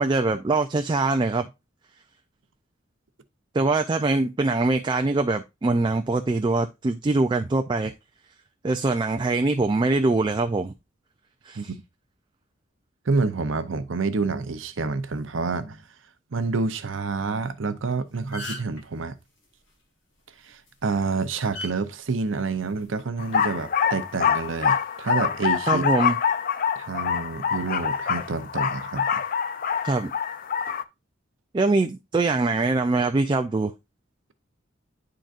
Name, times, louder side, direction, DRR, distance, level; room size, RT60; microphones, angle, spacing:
voice 1, 0.0-1.5 3.5-7.9 8.6-10.7 11.5-11.7 25.7-26.1 29.8-30.1 31.5-33.7, right 3 dB, 25° right, 0.3 m, -23 dB
voice 2, 13.1-15.8 16.3-19.2 20.4-25.8 26.8-29.1, right 4 dB, 75° right, 0.7 m, -28 dB
sound 1, 17.8-17.9 18.1-18.8 20.5-20.7 21.5-21.7 22.7-23.0, left 1 dB, 75° left, 1.9 m, -35 dB
sound 2, 23.2-30.8, left 7 dB, 45° left, 0.4 m, -25 dB
10.0 x 3.9 x 2.4 m
head